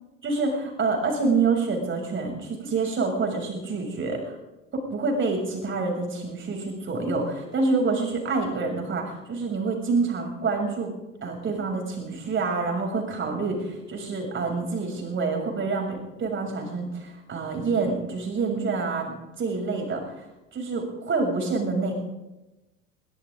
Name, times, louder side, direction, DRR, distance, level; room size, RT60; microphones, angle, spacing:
voice 1, 0.2-4.3 4.7-10.9 11.2-20.2 20.5-21.9, right 4 dB, 35° right, 2 dB, 6.9 m, -27 dB
22.5 x 21.0 x 2.6 m, 1.0 s
figure-of-eight pair, 70°, 36 cm